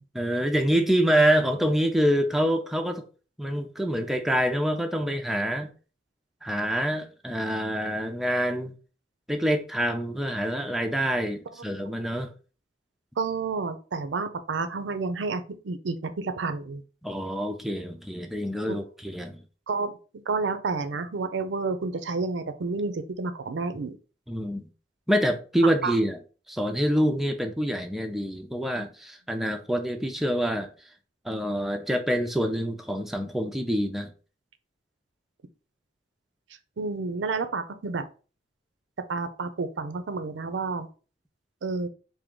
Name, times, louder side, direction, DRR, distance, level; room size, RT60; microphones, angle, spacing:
voice 1, 0.2-3.0 3.4-5.7 6.4-8.7 9.3-12.3 17.0-19.4 24.3-24.7 25.1-26.2 26.5-30.7 31.2-34.1, equal, ahead, 0.4 m, -26 dB
voice 2, 13.2-16.8 18.7-18.8 19.7-19.9 20.3-24.0 25.8-26.0 36.8-38.1 39.1-40.9 41.6-41.9, right 4 dB, 85° right, 0.5 m, -30 dB
3.5 x 2.6 x 3.8 m
head